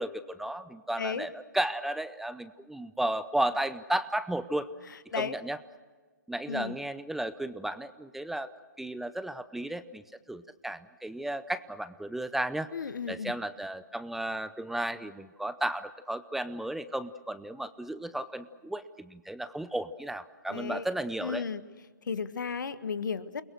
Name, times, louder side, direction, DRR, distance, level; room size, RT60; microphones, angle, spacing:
voice 1, 0.0-4.7 5.2-5.6 6.3-8.5 8.8-10.0 10.3-12.7 13.1-21.4, right 1 dB, ahead, 13 dB, 0.6 m, -34 dB
voice 2, 4.9-5.4 6.5-6.7 12.7-13.3 20.5-20.8 21.2-21.6 22.0-23.4, left 6 dB, 70° left, 13 dB, 1.5 m, -34 dB
29.0 x 22.0 x 6.4 m, 1.4 s
figure-of-eight pair, 135°, 11 cm